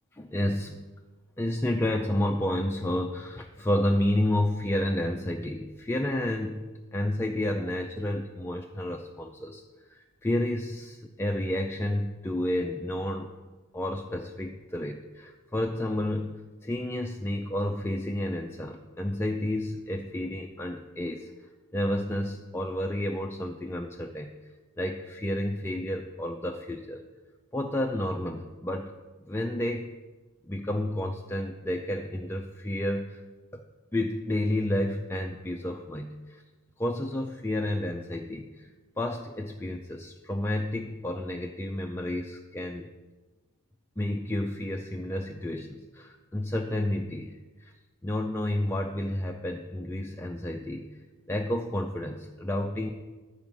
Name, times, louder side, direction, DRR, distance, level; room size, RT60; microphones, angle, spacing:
voice 1, 0.2-0.8 1.4-9.6 9.9-13.3 13.7-21.3 21.7-24.4 24.8-27.0 27.5-28.9 29.3-30.0 30.5-33.2 33.5-33.6 33.9-36.4 36.8-38.7 39.0-42.9 44.0-47.7 48.0-51.0 51.3-52.9, left 1 dB, 10° left, 2 dB, 0.4 m, -30 dB
10.5 x 4.8 x 7.2 m, 1.3 s
head